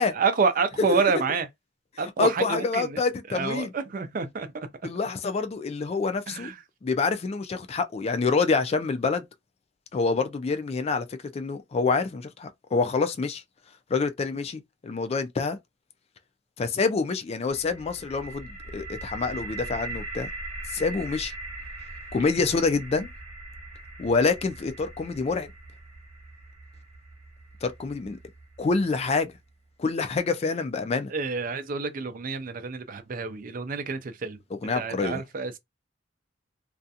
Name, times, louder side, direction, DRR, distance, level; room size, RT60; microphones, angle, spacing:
voice 1, 0.1-1.5 2.0-3.0 3.3-4.5 6.3-6.5 31.1-34.4 34.7-35.6, right 4 dB, 50° right, 0.4 m, -28 dB
voice 2, 2.2-3.7 4.8-6.5 6.8-9.3 9.9-13.4 13.9-15.6 16.6-20.3 20.7-21.3 22.1-23.1 24.0-25.5 27.6-28.2 28.6-29.3 29.8-31.1 34.6-35.2, left 4 dB, 35° left, 0.3 m, -27 dB
sound 1, 17.5-29.3, right 2 dB, 30° right, 0.9 m, -41 dB
2.4 x 2.2 x 2.6 m
head